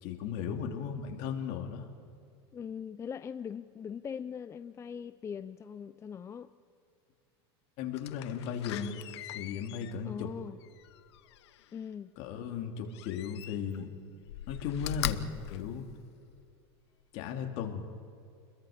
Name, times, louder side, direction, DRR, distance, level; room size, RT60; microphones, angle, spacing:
voice 1, 0.0-1.9 7.8-9.0 9.3-10.3 12.2-13.9 14.5-15.2 15.5-15.8 17.1-17.8, left 7 dB, 55° left, 3 dB, 2.9 m, -36 dB
voice 2, 2.5-6.5 10.0-10.6 11.7-12.2, left 7 dB, 20° left, 13 dB, 0.5 m, -41 dB
Slam, 7.9-11.8 12.9-13.8 14.2-16.5 17.0-17.1, left 13 dB, 85° left, 1.0 m, -41 dB
29.0 x 22.5 x 5.2 m, 2.4 s
supercardioid pair, 125°, 14 cm